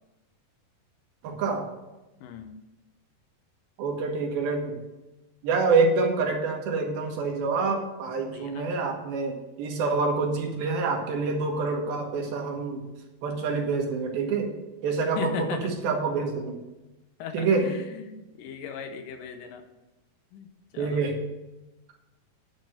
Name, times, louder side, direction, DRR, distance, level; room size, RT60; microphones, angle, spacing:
voice 1, 1.2-1.7 3.8-4.8 5.4-12.8 13.2-14.5 14.8-16.6 17.3-17.6 20.8-21.1, right 4 dB, 85° right, 2 dB, 3.2 m, -26 dB
voice 2, 2.2-2.5 8.3-8.7 15.2-15.7 17.2-19.7 20.3-21.0, left 6 dB, 75° left, 7 dB, 2.3 m, -37 dB
10.5 x 4.3 x 6.5 m, 1.0 s
omnidirectional pair, 4.1 m